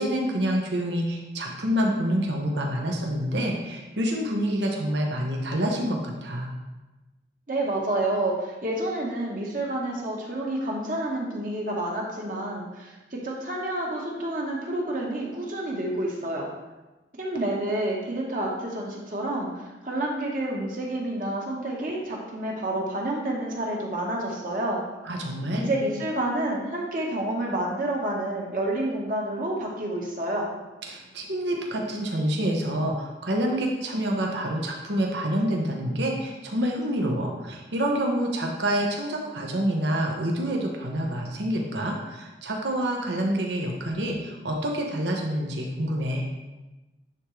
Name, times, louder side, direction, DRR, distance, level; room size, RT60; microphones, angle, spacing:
voice 1, 0.0-6.5 25.0-25.7 30.9-46.3, equal, 85° right, 0 dB, 1.0 m, -27 dB
voice 2, 7.5-16.5 17.2-24.8 25.5-30.5, right 1 dB, 50° right, -2 dB, 1.2 m, -29 dB
9.7 x 3.7 x 3.2 m, 1.1 s
head